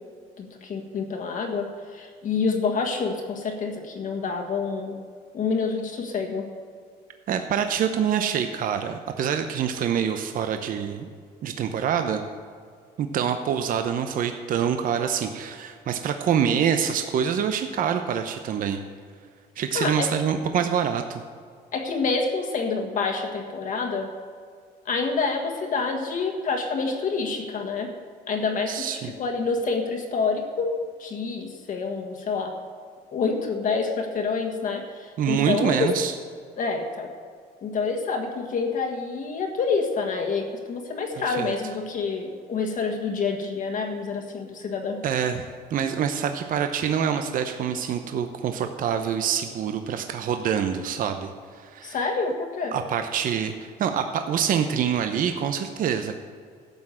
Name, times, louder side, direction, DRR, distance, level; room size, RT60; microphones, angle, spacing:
voice 1, 0.4-5.0 5.3-6.5 19.7-20.1 21.7-24.1 24.8-27.9 28.3-32.5 33.1-35.9 36.6-37.1 37.6-45.0 51.8-52.8, left 4 dB, 50° left, 2 dB, 1.6 m, -27 dB
voice 2, 7.3-11.1 11.4-12.2 13.0-18.8 19.6-21.2 28.7-29.1 35.2-36.1 41.3-41.5 45.0-52.0 52.7-56.2, right 8 dB, 55° right, 7 dB, 0.8 m, -26 dB
12.0 x 6.0 x 7.8 m, 2.1 s
cardioid pair, 110°, 17 cm